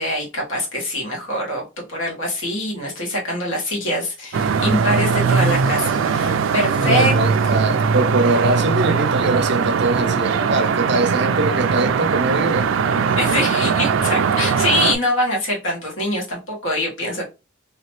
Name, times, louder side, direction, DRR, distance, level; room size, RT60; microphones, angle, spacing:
voice 1, 0.0-7.1 7.4-7.6 13.2-17.3, left 1 dB, 85° left, 1.6 m, -24 dB
sound 1, 4.3-14.9, right 5 dB, 85° right, 0.4 m, -20 dB
voice 2, 6.8-12.7, right 2 dB, 60° right, 0.7 m, -22 dB
2.9 x 2.9 x 3.0 m
head